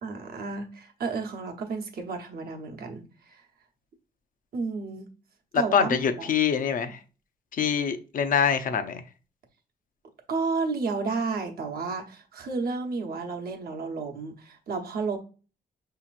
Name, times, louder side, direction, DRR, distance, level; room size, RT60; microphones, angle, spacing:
voice 1, 0.0-3.4 4.5-5.1 5.5-6.3 10.3-15.2, right 4 dB, 70° right, 0.9 m, -32 dB
voice 2, 5.5-7.0 7.5-9.0, left 7 dB, 60° left, 0.5 m, -24 dB
5.9 x 2.8 x 2.4 m
wide cardioid pair, 140°, 16 cm